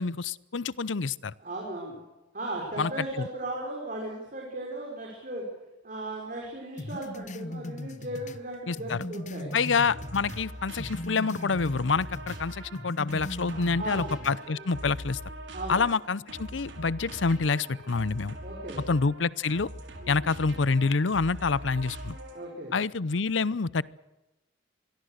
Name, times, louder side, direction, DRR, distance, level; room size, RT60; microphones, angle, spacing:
voice 1, 0.0-1.3 2.8-2.9 3.2-3.3 8.7-9.0 9.5-15.2 15.7-18.3 18.9-19.7 20.1-22.2 22.7-23.8, left 4 dB, 90° left, 20 dB, 0.7 m, -27 dB
voice 2, 1.4-2.0 2.3-5.4 5.8-9.6 13.5-14.2 15.5-15.8 18.4-18.9 20.0-20.3 22.3-22.7, right 1 dB, 45° right, -1 dB, 5.6 m, -37 dB
sound 1, 6.8-10.5 10.8-12.4 12.7-14.4, left 1 dB, 40° left, 1.0 m, -39 dB
sound 2, 9.9-22.6, right 1 dB, 80° right, 5.6 m, -42 dB
26.0 x 22.5 x 6.6 m, 1.0 s
head